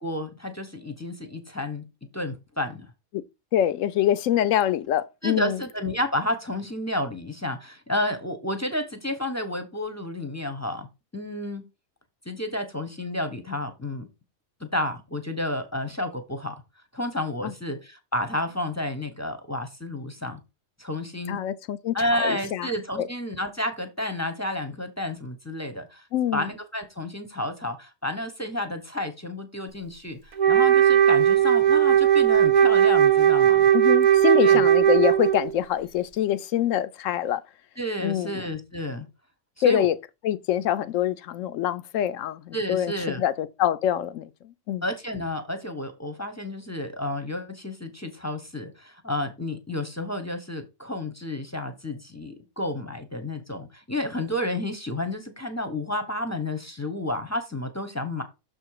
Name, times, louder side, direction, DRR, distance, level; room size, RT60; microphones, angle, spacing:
voice 1, 0.0-1.8 2.1-2.9 5.2-10.9 11.1-11.6 12.3-14.1 14.6-16.6 16.9-20.4 20.8-21.4 21.9-26.0 26.3-33.7 34.4-34.7 37.8-39.1 39.6-39.9 42.5-43.2 44.8-58.2, left 1 dB, 15° left, 0.7 m, -31 dB
voice 2, 3.5-5.6 17.4-17.5 21.3-22.7 23.0-23.1 26.1-26.5 33.7-37.4 38.0-38.4 39.6-40.0 40.2-44.8, left 11 dB, 70° left, 0.9 m, -25 dB
Wind instrument woodwind instrument, 30.4-35.5, right 10 dB, 40° right, 0.7 m, -18 dB
6.5 x 4.4 x 4.7 m
omnidirectional pair, 1.5 m